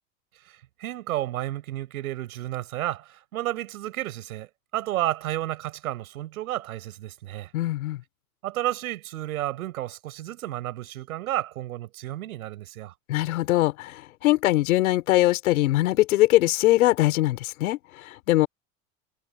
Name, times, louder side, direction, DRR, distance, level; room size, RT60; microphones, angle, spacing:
voice 1, 0.5-4.5 4.7-7.5 8.4-12.9, right 14 dB, 80° right, 5.4 m, -32 dB
voice 2, 7.5-8.0 13.1-18.5, left 16 dB, 75° left, 4.5 m, -22 dB
hypercardioid pair, 80°, 42 cm